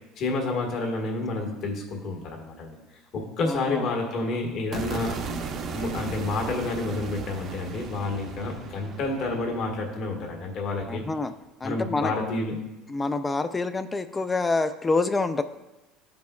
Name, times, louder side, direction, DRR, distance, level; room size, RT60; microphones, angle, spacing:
voice 1, 0.2-2.8 3.1-5.2 5.7-11.0 11.6-12.5, left 2 dB, 50° left, 1 dB, 1.6 m, -29 dB
voice 2, 3.5-3.8 10.9-11.3 11.6-12.1 12.9-15.4, left 3 dB, 15° left, 10 dB, 0.3 m, -27 dB
sound 1, 4.7-11.0, right 4 dB, 40° right, 0.6 m, -37 dB
12.5 x 5.2 x 2.3 m, 1.0 s
cardioid pair, 140°, 0 cm